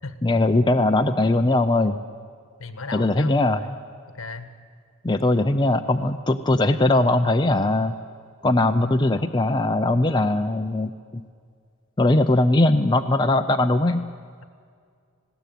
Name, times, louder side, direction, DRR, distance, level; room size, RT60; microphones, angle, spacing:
voice 1, 0.2-2.0 2.9-3.6 5.0-7.9 8.4-11.2 12.0-14.0, left 2 dB, 20° left, 5 dB, 0.5 m, -20 dB
voice 2, 2.6-3.8 4.1-4.5 6.5-6.8, left 3 dB, 60° left, 11 dB, 1.5 m, -36 dB
20.0 x 16.5 x 9.3 m, 2.1 s
head